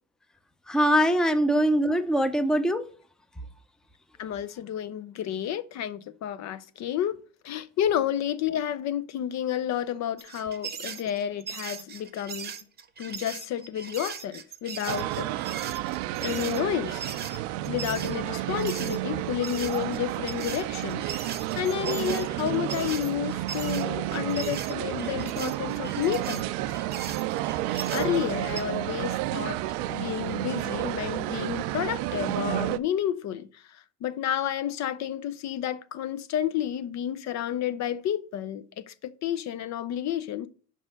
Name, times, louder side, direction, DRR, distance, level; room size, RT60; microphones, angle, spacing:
voice 1, 0.7-2.8, equal, ahead, 0.6 m, -22 dB
voice 2, 4.2-7.2 7.4-12.5 13.0-15.3 16.2-17.0 17.3-21.1 21.6-26.5 27.9-40.5, left 10 dB, 50° left, 0.5 m, -31 dB
sound 1, 10.2-19.0 19.4-28.6, right 6 dB, 30° right, 0.8 m, -39 dB
sound 2, 14.9-32.8, right 15 dB, 85° right, 0.5 m, -31 dB
5.4 x 5.3 x 6.3 m
supercardioid pair, 100°, 34 cm